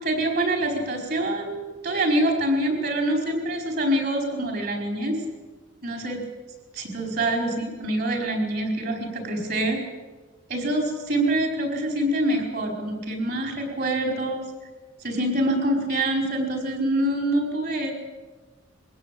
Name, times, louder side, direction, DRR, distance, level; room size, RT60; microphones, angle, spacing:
voice 1, 0.0-5.2 5.8-6.2 6.7-9.8 10.5-14.4 15.0-17.9, right 1 dB, 55° right, 2 dB, 4.9 m, -25 dB
22.5 x 16.5 x 8.7 m, 1.3 s
head